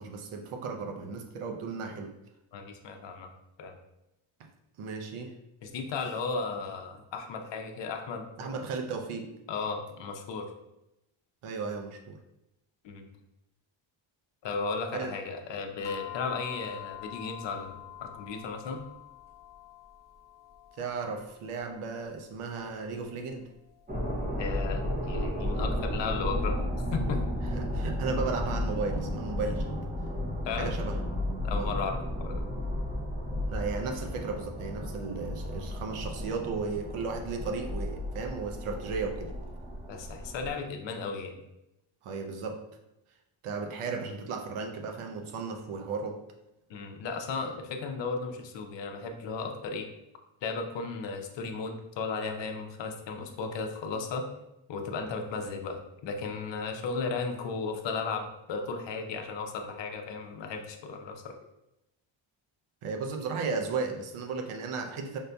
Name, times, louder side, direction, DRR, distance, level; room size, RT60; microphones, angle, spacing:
voice 1, 0.0-2.1 4.8-5.4 8.4-9.3 11.4-12.2 14.9-15.1 20.7-23.5 27.5-29.7 30.5-31.0 31.5-31.7 33.5-39.3 42.0-42.6 43.4-46.2 62.8-65.2, right 4 dB, 85° right, 4 dB, 0.6 m, -35 dB
voice 2, 2.5-3.3 3.6-3.7 5.6-8.6 9.5-10.5 12.8-13.1 14.4-18.8 24.4-26.6 26.9-27.2 30.4-30.7 31.4-32.4 39.9-41.4 46.7-49.9 50.4-54.2 54.7-61.4, left 4 dB, 60° left, 4 dB, 0.6 m, -35 dB
sound 1, 15.8-26.3, left 13 dB, 20° left, 0.7 m, -47 dB
sound 2, 23.9-40.5, left 1 dB, 20° right, 0.6 m, -33 dB
5.2 x 2.6 x 2.2 m, 0.89 s
cardioid pair, 120°, 49 cm